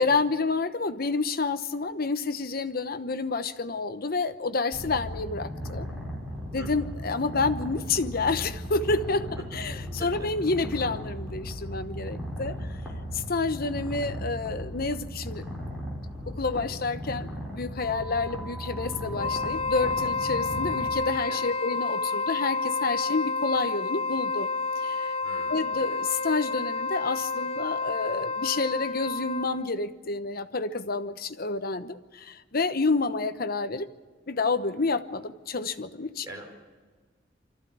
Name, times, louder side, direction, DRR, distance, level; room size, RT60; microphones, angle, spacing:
voice 1, 0.0-5.9 6.5-12.7 13.1-15.4 16.3-24.5 24.8-25.1 25.5-33.9 34.3-36.3, left 3 dB, 55° left, 10 dB, 1.0 m, -29 dB
Purr, 4.7-20.9, equal, 5° right, 5.6 m, -37 dB
voice 2, 9.4-10.3 21.3-21.5 25.2-25.8 36.2-36.5, right 1 dB, 20° right, 0 dB, 4.9 m, -44 dB
sound 1, 17.8-22.8, right 1 dB, 85° right, 1.6 m, -43 dB
Wind instrument woodwind instrument, 19.1-29.7, left 4 dB, 30° left, 0.6 m, -30 dB
24.5 x 14.5 x 8.7 m, 1.4 s
head